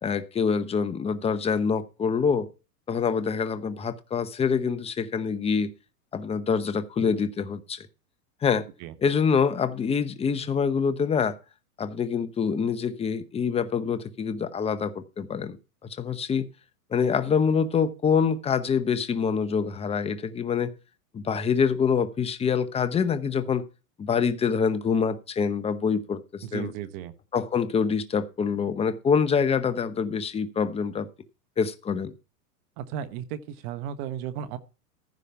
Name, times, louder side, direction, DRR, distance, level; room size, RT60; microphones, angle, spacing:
voice 1, 0.0-2.5 2.9-5.7 6.1-7.9 8.4-8.6 9.0-11.4 11.8-15.6 16.0-16.4 16.9-20.7 21.1-23.6 24.0-26.7 27.3-31.1 31.6-32.1, left 6 dB, 15° left, 0.8 m, -25 dB
voice 2, 26.5-27.1 32.8-33.4 33.6-34.6, right 10 dB, 45° right, 1.2 m, -34 dB
14.5 x 5.0 x 5.8 m
hypercardioid pair, 125°, 47 cm